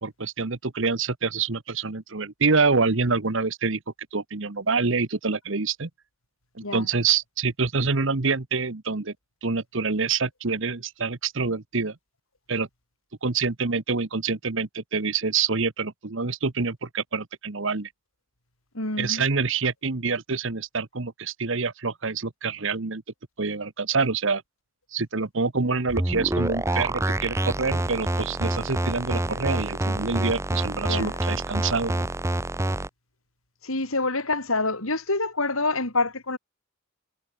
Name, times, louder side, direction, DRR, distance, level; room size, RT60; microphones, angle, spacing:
voice 1, 0.0-3.8 4.1-5.9 6.5-9.1 9.4-11.9 12.5-12.7 13.2-17.9 19.0-23.0 23.4-24.4 24.9-32.1, right 4 dB, 60° right, 1.1 m, -26 dB
voice 2, 18.7-19.2 30.9-31.2 33.6-36.4, left 3 dB, 75° left, 5.6 m, -27 dB
sound 1, 25.9-32.9, right 1 dB, 15° right, 0.7 m, -27 dB
head